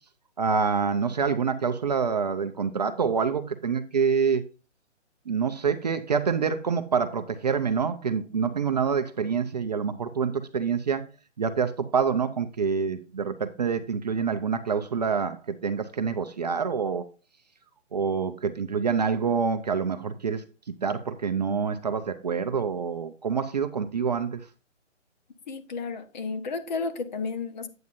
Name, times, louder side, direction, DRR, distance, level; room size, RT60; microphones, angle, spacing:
voice 1, 0.4-4.4 5.3-11.0 11.4-17.0 17.9-20.4 20.8-24.4, right 6 dB, 35° right, 0.6 m, -26 dB
voice 2, 25.5-27.7, left 4 dB, 35° left, 1.2 m, -32 dB
9.3 x 8.6 x 2.6 m
hypercardioid pair, 150°, 37 cm